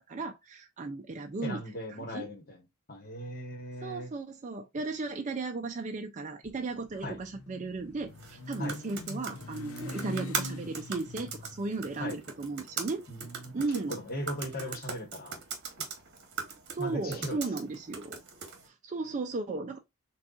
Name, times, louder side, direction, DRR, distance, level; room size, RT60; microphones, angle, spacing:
voice 1, 0.0-1.6 1.9-2.3 3.8-13.0 13.5-14.0 16.7-18.2 18.6-19.8, right 3 dB, 35° right, 0.4 m, -35 dB
voice 2, 1.4-4.1 7.0-7.2 8.6-8.8 12.0-12.2 13.1-13.6 13.9-15.4 16.8-17.4, equal, 40° left, 1.2 m, -38 dB
Motorcycle, 6.4-14.6, left 2 dB, 70° left, 0.7 m, -44 dB
sound 1, 8.1-18.7, right 5 dB, 50° right, 1.1 m, -41 dB
6.3 x 2.4 x 2.4 m
head